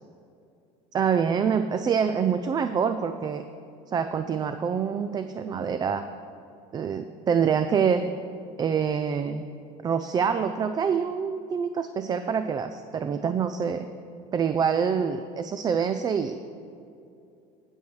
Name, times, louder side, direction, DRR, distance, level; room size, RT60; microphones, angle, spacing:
voice 1, 0.9-3.4 3.9-6.0 6.7-8.1 8.6-9.5 9.8-13.9 14.3-16.4, right 6 dB, 30° right, 9 dB, 0.4 m, -26 dB
15.5 x 7.2 x 3.2 m, 2.5 s
supercardioid pair, 115°, 15 cm